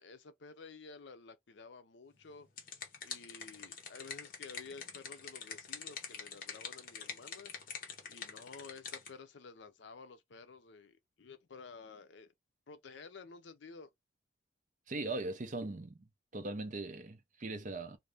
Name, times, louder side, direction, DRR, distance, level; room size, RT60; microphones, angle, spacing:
voice 1, 0.0-2.5 3.0-7.8 8.1-12.3 12.7-13.9, left 4 dB, 70° left, 0.5 m, -52 dB
sound 1, 2.2-9.1, left 6 dB, 50° left, 0.9 m, -45 dB
voice 2, 14.9-16.1 16.3-18.0, right 2 dB, 40° right, 0.6 m, -40 dB
2.6 x 2.6 x 3.3 m
head